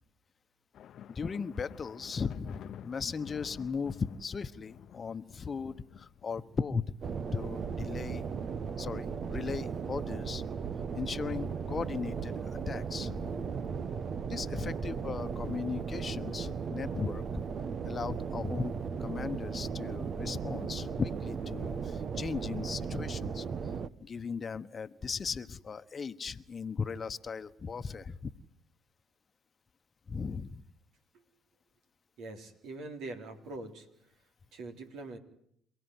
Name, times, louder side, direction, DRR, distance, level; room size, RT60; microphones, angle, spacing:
sound 1, 0.7-8.1, left 10 dB, 60° left, 0.9 m, -51 dB
voice 1, 1.1-6.8 7.3-8.2 8.8-10.4 10.9-13.3 14.3-17.4 17.8-23.4 24.0-28.3 30.1-30.6, left 5 dB, 35° left, 11 dB, 1.2 m, -37 dB
sound 2, 7.0-23.9, right 6 dB, 45° right, 1.2 m, -36 dB
voice 2, 32.2-34.1 34.5-35.2, right 2 dB, 65° right, 5 dB, 3.8 m, -43 dB
28.5 x 17.0 x 9.7 m, 0.72 s
hypercardioid pair, 65°, 0 cm